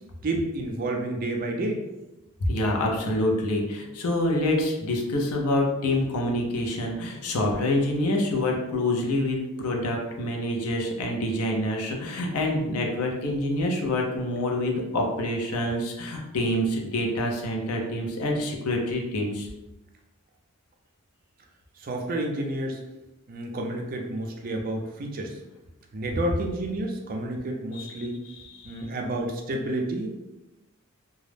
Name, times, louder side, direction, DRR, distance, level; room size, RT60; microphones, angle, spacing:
voice 1, 0.2-1.8 21.8-22.8 23.3-25.4 25.9-28.2 28.6-30.1, right 1 dB, 40° right, 2 dB, 0.4 m, -30 dB
voice 2, 2.5-19.5 27.7-28.8, left 1 dB, 80° left, 0 dB, 0.6 m, -27 dB
2.3 x 2.0 x 3.2 m, 1.0 s
head